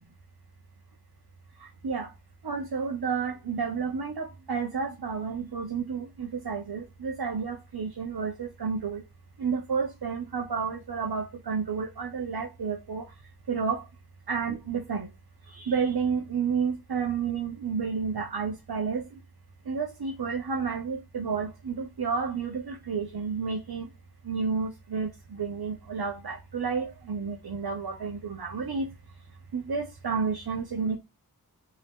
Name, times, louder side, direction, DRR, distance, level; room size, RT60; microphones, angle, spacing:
voice 1, 2.4-9.0 9.4-13.0 13.5-13.8 14.3-15.1 15.5-19.1 19.7-23.9 24.3-28.9 29.5-31.0, right 5 dB, 85° right, 0.8 m, -31 dB
3.7 x 2.8 x 3.5 m
wide cardioid pair, 50°, 37 cm